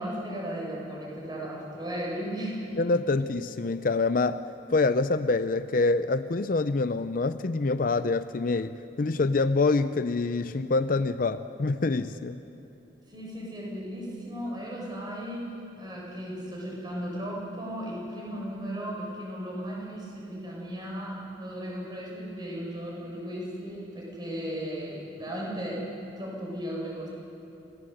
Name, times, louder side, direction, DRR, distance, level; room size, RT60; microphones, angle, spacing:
voice 1, 0.0-2.8 13.1-25.8 26.2-27.1, equal, 20° right, -3 dB, 6.4 m, -36 dB
voice 2, 2.8-4.4 4.7-12.4, left 3 dB, 45° left, 12 dB, 0.5 m, -26 dB
27.5 x 17.5 x 7.9 m, 2.8 s
head